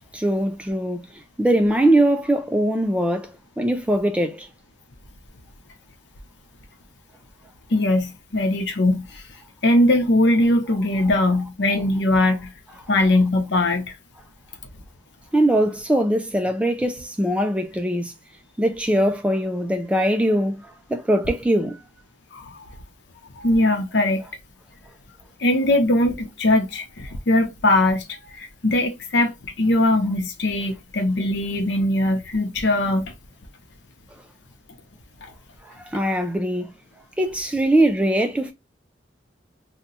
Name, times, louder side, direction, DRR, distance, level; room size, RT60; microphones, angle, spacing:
voice 1, 0.1-3.3 3.6-4.5 15.3-18.1 18.6-21.8 35.6-36.7 37.2-38.5, right 1 dB, 5° right, 0.3 m, -21 dB
voice 2, 7.7-9.2 9.6-12.5 12.9-13.9 22.3-22.5 23.4-24.2 25.4-28.0 28.4-33.1 35.2-35.3, left 1 dB, 75° left, 0.7 m, -20 dB
2.8 x 2.2 x 3.9 m
head